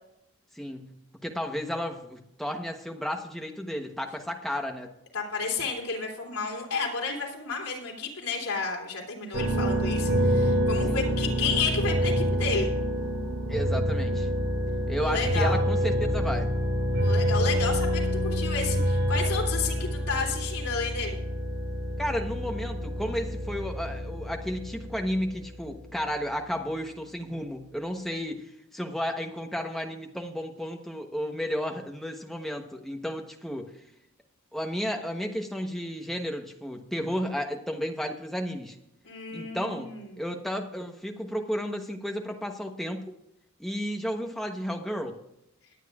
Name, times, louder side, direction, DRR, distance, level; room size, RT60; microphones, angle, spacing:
voice 1, 0.5-0.9 1.2-4.9 10.9-11.0 13.5-14.3 14.9-16.5 22.0-33.7 34.5-38.8 39.3-39.9 40.2-43.1 43.6-45.2, equal, ahead, 3 dB, 1.1 m, -33 dB
voice 2, 5.1-12.7 15.0-15.6 17.0-21.2 39.0-40.2, left 4 dB, 85° left, 0 dB, 3.4 m, -31 dB
sound 1, 9.3-25.9, equal, 70° right, 2.3 m, -27 dB
21.0 x 9.1 x 2.5 m, 0.84 s
head